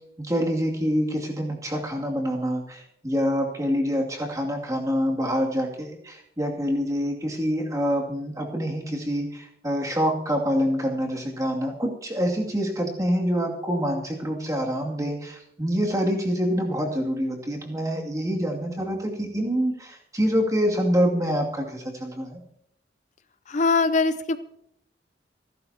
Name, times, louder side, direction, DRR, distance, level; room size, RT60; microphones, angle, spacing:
voice 1, 0.2-22.4, equal, 20° right, -1 dB, 2.5 m, -26 dB
voice 2, 23.5-24.4, left 4 dB, 40° left, 12 dB, 0.5 m, -22 dB
27.5 x 11.5 x 2.9 m, 0.76 s
head